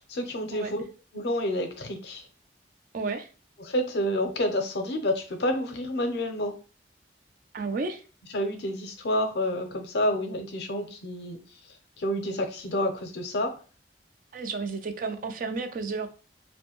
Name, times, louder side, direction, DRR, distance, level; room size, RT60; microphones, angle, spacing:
voice 1, 0.1-0.8 1.1-2.2 3.6-6.6 8.3-11.4 12.0-13.6, left 1 dB, 65° left, 0.5 m, -29 dB
voice 2, 2.9-3.3 7.5-8.0 14.3-16.1, right 4 dB, 50° right, 0.4 m, -32 dB
2.5 x 2.2 x 2.8 m
head